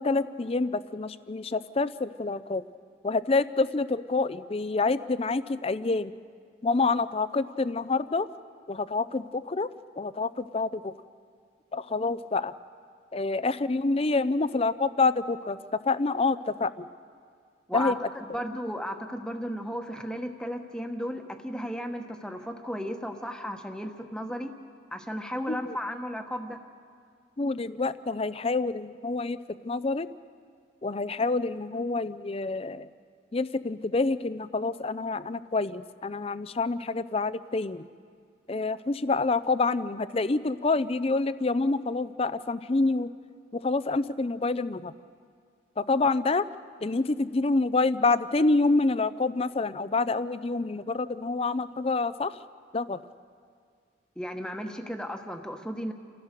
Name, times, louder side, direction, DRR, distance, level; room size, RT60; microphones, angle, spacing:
voice 1, 0.0-2.6 3.0-6.1 6.6-8.3 8.7-9.7 10.0-10.9 11.7-12.5 13.1-15.6 15.8-16.9 17.7-18.0 25.5-25.8 27.4-30.1 30.8-32.9 33.3-37.9 38.5-43.1 43.5-44.9 45.8-46.5 46.8-52.4 52.7-53.1, left 3 dB, 30° left, 15 dB, 0.5 m, -27 dB
voice 2, 18.3-24.5 24.9-26.6 54.2-55.9, equal, 5° left, 5 dB, 1.2 m, -34 dB
29.0 x 15.5 x 6.7 m, 2.2 s
head